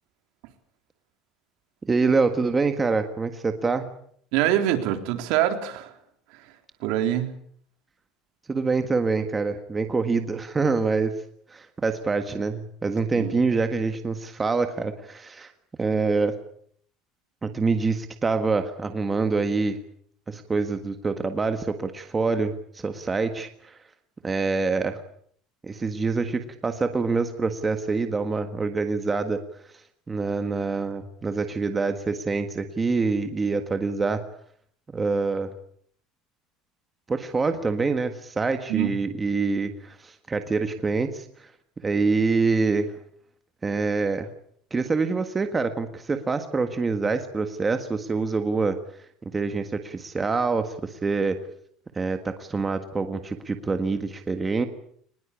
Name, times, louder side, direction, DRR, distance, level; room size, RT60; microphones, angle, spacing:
voice 1, 1.9-3.9 8.5-11.1 11.5-15.5 15.8-16.3 17.4-19.8 20.3-23.8 24.2-25.0 25.6-29.4 30.1-34.2 34.9-35.5 37.1-41.5 41.8-42.9 43.6-44.3 44.7-48.8 49.3-51.4 51.9-54.7, right 4 dB, 15° right, 7 dB, 1.6 m, -25 dB
voice 2, 4.3-5.9 6.3-6.5 6.8-7.3 13.1-13.4 38.7-39.0, right 12 dB, 65° right, 7 dB, 3.7 m, -25 dB
23.0 x 21.0 x 8.6 m, 0.62 s
cardioid pair, 165°, 0 cm